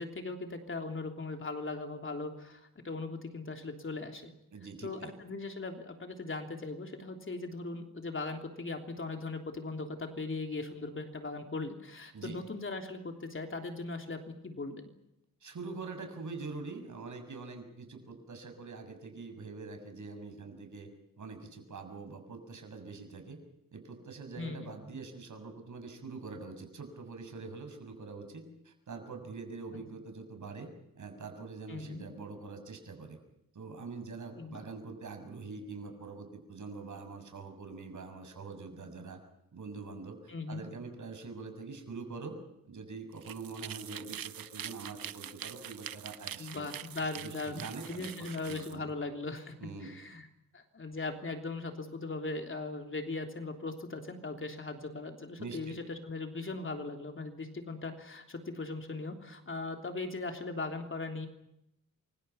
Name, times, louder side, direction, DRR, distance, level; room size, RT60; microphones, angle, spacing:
voice 1, 0.0-4.3 4.8-14.8 24.4-24.7 31.7-32.0 34.4-34.6 40.3-40.6 46.4-49.5 49.8-50.3 50.5-61.3, left 3 dB, 35° left, 4 dB, 3.3 m, -39 dB
voice 2, 4.5-5.2 12.1-12.4 15.4-20.9 21.2-23.4 23.7-33.2 33.5-39.2 39.5-42.4 42.6-46.7 47.0-48.9 49.6-49.9 55.4-55.8, right 4 dB, 60° right, 6 dB, 6.8 m, -44 dB
sound 1, 43.1-48.8, right 10 dB, 90° right, 1.0 m, -44 dB
29.0 x 25.0 x 5.8 m, 0.83 s
wide cardioid pair, 130°, 34 cm